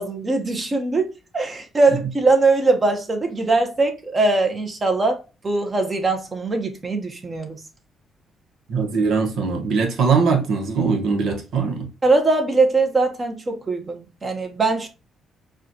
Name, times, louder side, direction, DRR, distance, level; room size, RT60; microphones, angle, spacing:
voice 1, 0.0-5.2 5.4-7.6 12.0-14.9, right 3 dB, 30° right, 1.1 m, -21 dB
voice 2, 8.7-11.9, right 5 dB, 75° right, 1.2 m, -21 dB
4.8 x 2.5 x 2.8 m
cardioid pair, 90°, 0 cm